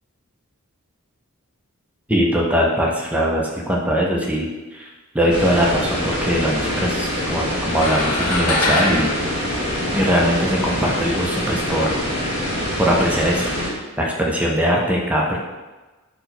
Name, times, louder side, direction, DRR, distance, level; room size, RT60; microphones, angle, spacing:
voice 1, 2.1-9.1 9.9-12.1 12.8-15.4, equal, 5° right, -2 dB, 0.5 m, -21 dB
sound 1, 5.3-13.7, equal, 20° right, 1.4 m, -25 dB
sound 2, 7.7-10.4, left 2 dB, 85° left, 0.6 m, -24 dB
4.2 x 2.2 x 4.2 m, 1.2 s
head